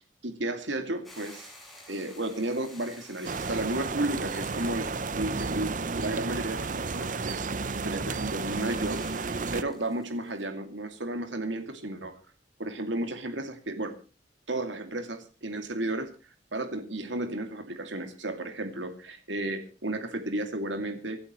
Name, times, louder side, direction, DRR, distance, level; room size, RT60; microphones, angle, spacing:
voice 1, 0.2-1.5 1.9-7.4 7.7-12.2 12.6-14.0 14.5-16.1 16.5-21.2, right 1 dB, 90° right, 8 dB, 2.4 m, -33 dB
Hiss / Boiling, 1.0-10.4, left 1 dB, ahead, 6.5 m, -52 dB
sound 1, 3.2-9.6, right 4 dB, 45° right, 0.7 m, -32 dB
26.0 x 12.0 x 3.1 m, 0.33 s
head